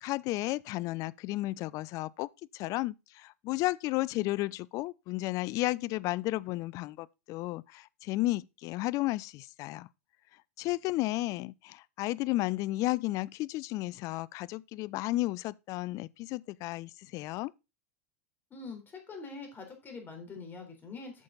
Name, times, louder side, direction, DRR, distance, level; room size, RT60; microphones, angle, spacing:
voice 1, 0.0-9.9 10.6-17.5, left 18 dB, 45° left, 0.4 m, -33 dB
voice 2, 18.5-21.2, left 4 dB, 25° left, 3.8 m, -44 dB
8.4 x 6.7 x 3.9 m
hypercardioid pair, 100°, 8 cm